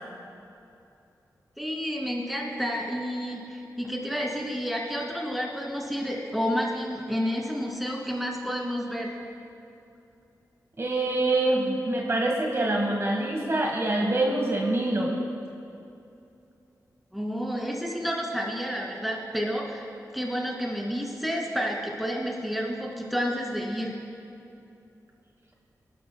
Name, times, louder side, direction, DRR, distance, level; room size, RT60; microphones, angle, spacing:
voice 1, 1.6-9.2 17.1-19.9 20.1-24.0, equal, ahead, -2 dB, 2.3 m, -30 dB
voice 2, 10.8-15.1, right 2 dB, 40° right, -1 dB, 1.3 m, -25 dB
19.5 x 12.5 x 2.2 m, 2.7 s
wide cardioid pair, 70°, 7 cm